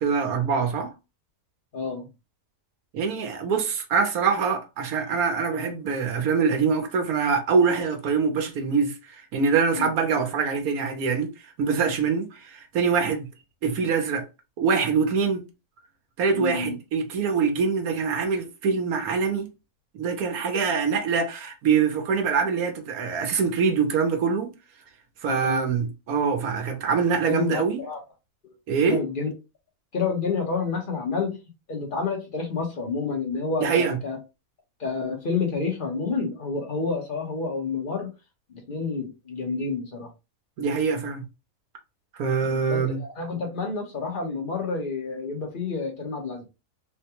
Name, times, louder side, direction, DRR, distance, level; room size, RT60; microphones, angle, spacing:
voice 1, 0.0-0.9 2.9-11.3 11.6-13.3 13.6-14.3 14.6-15.4 16.2-19.5 19.9-24.5 25.2-27.8 28.7-29.0 33.6-34.0 40.6-41.2 42.2-43.0, right 5 dB, 75° right, 1.2 m, -24 dB
voice 2, 1.7-2.1 9.8-9.9 16.3-16.8 20.6-20.8 25.2-25.6 27.3-28.0 28.4-28.5 28.8-29.3 29.9-31.4 31.7-34.2 34.8-38.1 38.5-40.1 42.4-46.4, left 4 dB, 40° left, 1.1 m, -29 dB
3.6 x 2.2 x 2.9 m
omnidirectional pair, 1.6 m